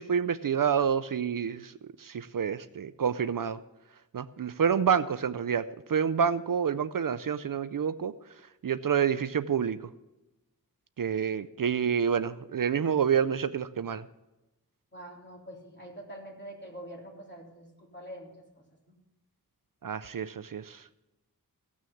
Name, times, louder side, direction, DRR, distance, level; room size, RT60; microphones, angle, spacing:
voice 1, 0.0-3.6 4.1-8.1 8.6-9.8 11.0-14.0 19.8-20.8, right 7 dB, 65° right, 14 dB, 0.5 m, -28 dB
voice 2, 14.9-18.3, right 1 dB, 30° left, -2 dB, 3.5 m, -45 dB
15.5 x 6.3 x 7.0 m, 0.97 s
wide cardioid pair, 60°, 37 cm